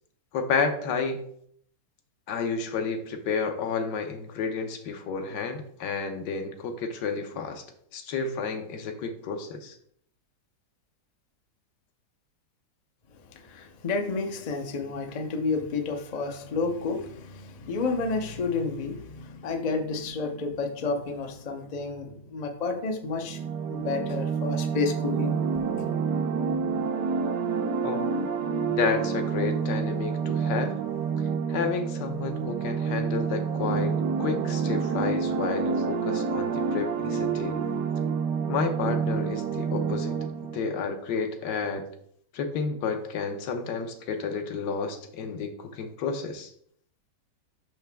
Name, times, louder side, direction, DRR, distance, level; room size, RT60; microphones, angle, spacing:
voice 1, 0.3-1.2 2.3-7.6 7.9-9.7 27.8-28.1 28.7-30.7 31.5-37.6 38.5-40.2 40.5-41.8 42.3-46.5, left 5 dB, 90° left, 6 dB, 1.4 m, -31 dB
voice 2, 13.3-23.4 23.7-25.4, left 4 dB, 60° left, 5 dB, 0.4 m, -30 dB
sound 1, 23.2-40.6, right 6 dB, 85° right, 1.3 m, -28 dB
5.8 x 5.6 x 3.4 m, 0.65 s
omnidirectional pair, 1.8 m